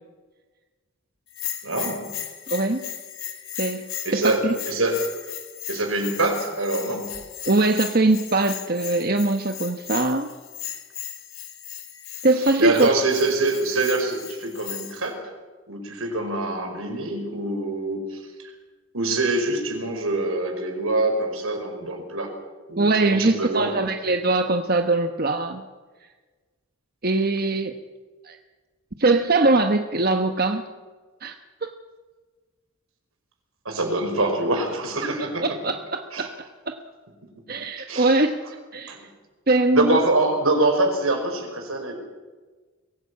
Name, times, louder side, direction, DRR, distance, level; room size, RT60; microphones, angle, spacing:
Bell, 1.3-15.1, left 11 dB, 75° left, 2.9 m, -36 dB
voice 1, 1.6-2.1 4.1-5.1 5.7-7.1 12.4-15.3 15.7-18.5 18.9-22.3 22.7-23.7 33.7-35.5 36.1-36.3 37.8-38.2 38.9-39.0 39.7-42.0, right 2 dB, 80° right, 4 dB, 5.2 m, -25 dB
voice 2, 2.5-2.9 3.6-4.5 7.5-10.3 12.2-12.9 22.8-25.6 27.0-27.7 28.2-28.4 29.0-30.6 31.2-31.3 31.6-31.7 35.4-36.3 36.7-36.8 37.5-38.4 38.7-39.0 39.5-40.0, right 2 dB, 45° right, 6 dB, 1.1 m, -22 dB
23.0 x 17.5 x 8.5 m, 1.3 s
head